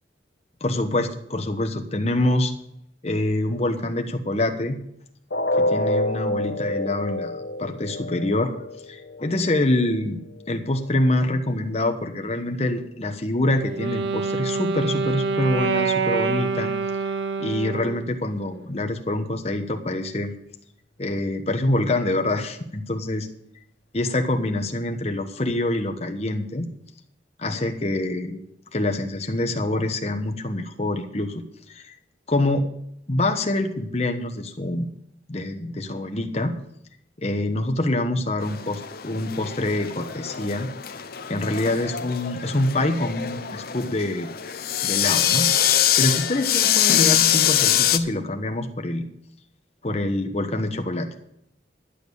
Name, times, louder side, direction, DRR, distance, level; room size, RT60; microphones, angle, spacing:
voice 1, 0.6-2.5 3.0-4.8 5.6-8.5 8.9-10.2 10.5-16.7 17.4-20.3 21.0-23.3 23.9-26.7 27.4-28.4 28.7-31.9 32.3-32.7 33.1-34.9 35.3-36.5 37.2-40.7 41.3-44.3 44.8-45.5 46.0-49.1 49.8-51.1, left 1 dB, 35° left, 4 dB, 1.1 m, -25 dB
sound 1, 5.3-11.3 11.7-11.9 12.3-12.4, left 1 dB, 75° left, 1.3 m, -29 dB
Wind instrument woodwind instrument, 13.5-18.1, right 5 dB, 75° right, 0.9 m, -26 dB
sound 2, 38.4-48.0, left 10 dB, 55° left, 0.7 m, -23 dB
11.5 x 8.4 x 6.9 m, 0.75 s
head